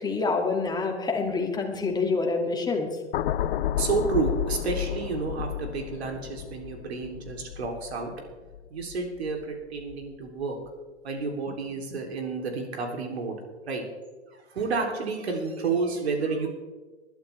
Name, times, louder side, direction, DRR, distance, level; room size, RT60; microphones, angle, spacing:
voice 1, 0.0-2.9, left 4 dB, 10° left, 2 dB, 2.4 m, -27 dB
sound 1, 3.1-9.4 9.8-10.1, left 11 dB, 60° left, 0.6 m, -32 dB
voice 2, 3.8-8.1 8.7-10.6 11.0-13.4 13.7-13.8 14.3-16.5, right 4 dB, 65° right, 2 dB, 3.3 m, -30 dB
21.0 x 11.5 x 3.5 m, 1.3 s
figure-of-eight pair, 100°, 34 cm